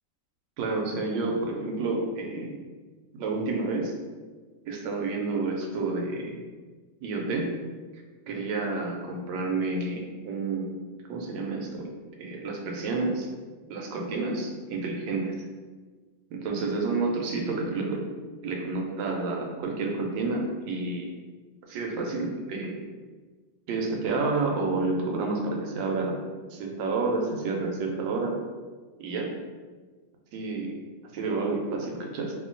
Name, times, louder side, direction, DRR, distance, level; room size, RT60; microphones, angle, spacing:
voice 1, 0.6-2.6 3.1-3.9 4.7-6.4 7.0-7.5 8.3-10.8 11.1-11.9 12.2-13.3 13.7-15.3 16.3-18.0 18.4-21.1 21.7-22.7 23.7-26.2 26.5-28.4 29.0-29.3 30.3-30.7 31.1-32.3, right 3 dB, 80° right, 0 dB, 1.3 m, -29 dB
2.8 x 2.6 x 3.7 m, 1.4 s
omnidirectional pair, 2.0 m